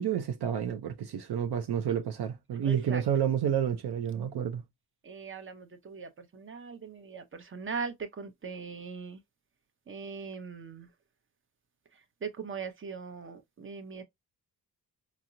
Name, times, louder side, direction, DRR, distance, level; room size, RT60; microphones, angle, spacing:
voice 1, 0.0-4.6, right 9 dB, 70° right, 0.5 m, -30 dB
voice 2, 2.6-3.0 5.0-9.2 9.9-10.9 12.2-14.0, right 5 dB, 30° right, 0.7 m, -40 dB
4.3 x 2.0 x 2.5 m
cardioid pair, 90°, 41 cm